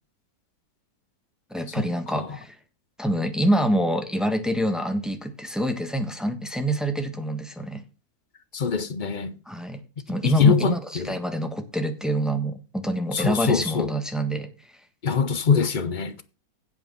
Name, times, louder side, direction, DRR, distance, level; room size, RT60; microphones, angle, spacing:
voice 1, 1.5-2.6 3.0-7.8 9.5-9.8 10.1-14.5, right 1 dB, ahead, 1.1 m, -26 dB
voice 2, 8.5-9.3 10.2-11.1 13.1-13.9 15.0-16.1, left 6 dB, 60° left, 0.4 m, -23 dB
9.6 x 8.3 x 5.6 m
omnidirectional pair, 1.9 m